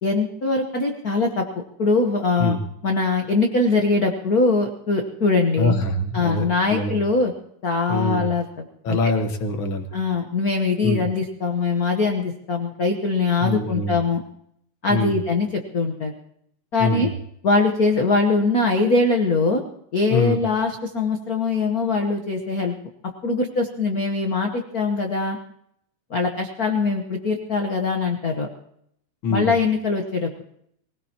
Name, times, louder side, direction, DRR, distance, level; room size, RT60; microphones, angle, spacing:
voice 1, 0.0-2.6 2.8-5.7 6.1-7.3 7.6-9.0 9.9-14.2 14.8-16.1 16.7-17.1 17.4-19.6 19.9-22.7 23.2-25.4 26.1-28.5 29.3-30.4, left 3 dB, 80° left, 3 dB, 0.8 m, -22 dB
voice 2, 5.6-6.4 6.7-7.0 7.9-8.3 8.8-9.9 10.8-11.0 13.4-14.0 14.9-15.2 16.8-17.1 20.1-20.4 29.2-29.5, left 2 dB, 50° left, 6 dB, 1.8 m, -24 dB
24.0 x 17.5 x 2.9 m, 0.72 s
omnidirectional pair, 3.5 m